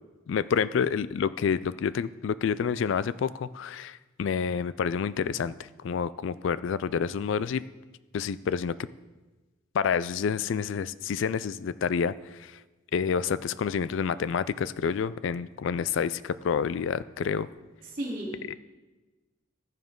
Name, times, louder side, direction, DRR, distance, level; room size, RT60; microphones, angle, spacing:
voice 1, 0.3-5.5 5.8-7.6 8.1-8.7 9.7-12.1 12.4-12.5 12.9-17.5 18.5-18.6, left 6 dB, 70° left, 16 dB, 0.3 m, -28 dB
voice 2, 17.8-18.6, right 1 dB, 40° right, -3 dB, 3.4 m, -35 dB
14.5 x 9.1 x 3.8 m, 1.2 s
head